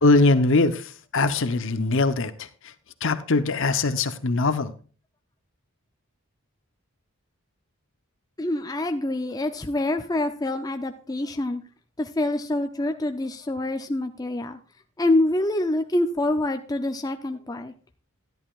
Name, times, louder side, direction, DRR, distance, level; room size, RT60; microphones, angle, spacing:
voice 1, 0.0-2.7 3.0-4.7, left 3 dB, 60° left, 11 dB, 0.8 m, -22 dB
voice 2, 8.4-11.6 12.0-14.6 15.0-17.7, left 1 dB, 15° left, 6 dB, 0.5 m, -26 dB
13.5 x 11.0 x 2.4 m, 0.38 s
head